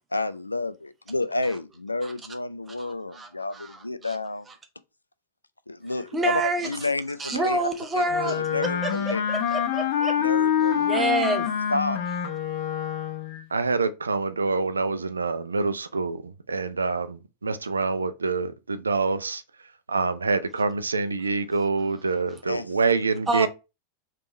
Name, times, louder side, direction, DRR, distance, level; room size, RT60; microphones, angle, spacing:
voice 1, 0.1-4.5 5.7-9.2 10.2-11.4 11.7-12.0 22.5-22.7, left 2 dB, 80° left, 0.3 m, -30 dB
voice 2, 2.8-4.2 4.5-4.6 6.1-6.7 7.2-10.1 10.8-11.5 23.3-23.5, right 2 dB, 15° right, 0.9 m, -28 dB
Wind instrument woodwind instrument, 8.1-13.4, left 9 dB, 50° left, 0.7 m, -26 dB
voice 3, 13.5-19.4 19.9-23.5, right 4 dB, 75° right, 0.4 m, -26 dB
3.5 x 3.3 x 4.0 m
figure-of-eight pair, 90°, 0 cm